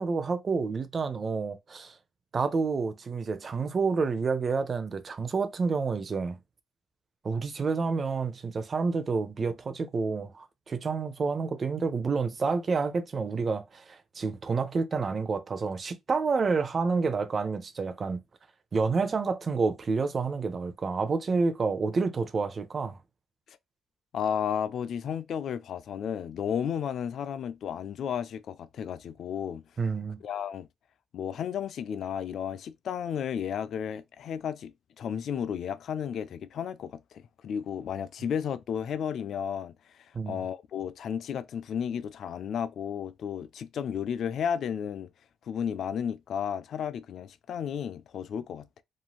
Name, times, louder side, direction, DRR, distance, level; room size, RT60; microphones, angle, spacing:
voice 1, 0.0-1.9 2.3-6.4 7.2-18.2 18.7-23.0 29.8-30.2 40.1-40.4, right 4 dB, 40° right, 0.6 m, -29 dB
voice 2, 24.1-29.6 30.2-30.7 31.1-39.7 40.3-45.1 45.5-48.8, left 8 dB, 65° left, 0.3 m, -33 dB
3.0 x 2.6 x 2.3 m
cardioid pair, 90°, 0 cm